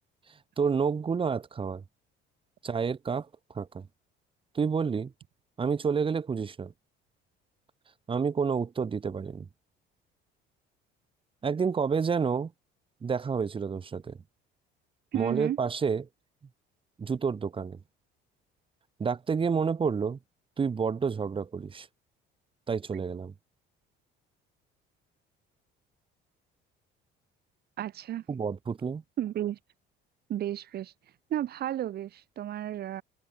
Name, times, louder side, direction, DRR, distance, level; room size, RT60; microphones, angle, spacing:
voice 1, 0.6-1.8 2.6-3.3 3.5-3.9 4.5-5.1 5.6-6.7 8.1-9.4 11.4-12.5 13.0-14.2 15.1-16.0 17.0-17.8 19.0-20.2 20.6-21.9 22.7-23.3 28.3-29.0, right 6 dB, 25° right, 4.4 m, -29 dB
voice 2, 15.1-15.6 27.8-28.2 29.2-29.6 30.3-30.9 31.3-33.0, right 12 dB, 50° right, 3.4 m, -32 dB
cardioid pair, 140°, 20 cm